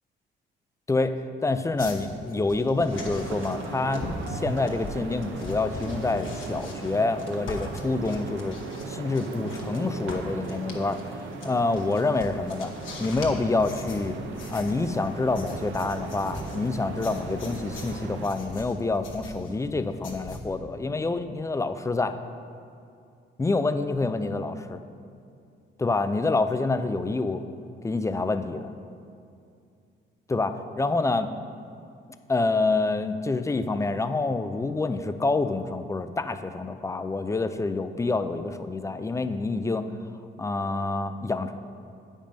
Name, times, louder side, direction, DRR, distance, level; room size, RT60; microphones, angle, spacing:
voice 1, 0.9-8.6 8.9-11.1 11.4-12.7 13.0-14.1 14.5-22.2 23.4-24.8 25.8-27.4 27.8-28.7 30.3-31.3 32.3-39.9 40.4-41.5, left 3 dB, 15° left, 9 dB, 0.4 m, -27 dB
sound 1, 1.8-9.8 10.1-20.4, left 1 dB, 75° left, 1.4 m, -41 dB
sound 2, 2.9-18.3, right 4 dB, 75° right, 0.8 m, -38 dB
8.7 x 5.4 x 5.2 m, 2.4 s
cardioid pair, 90°, 20 cm